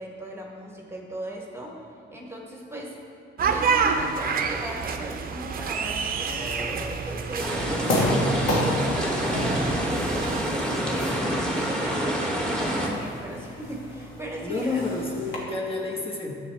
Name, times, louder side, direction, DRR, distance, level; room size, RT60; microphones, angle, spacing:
voice 1, 0.0-1.8 2.1-3.0 3.4-14.8, right 1 dB, 10° right, -1 dB, 1.1 m, -37 dB
sound 1, 3.4-10.4, right 5 dB, 45° right, 0.6 m, -29 dB
sound 2, 6.3-15.3, left 1 dB, 90° left, 1.5 m, -31 dB
sound 3, 7.4-12.9, equal, 5° left, 1.4 m, -27 dB
voice 2, 14.4-16.3, left 3 dB, 25° left, -2 dB, 1.3 m, -29 dB
9.7 x 7.7 x 3.3 m, 2.4 s
cardioid pair, 90°, 20 cm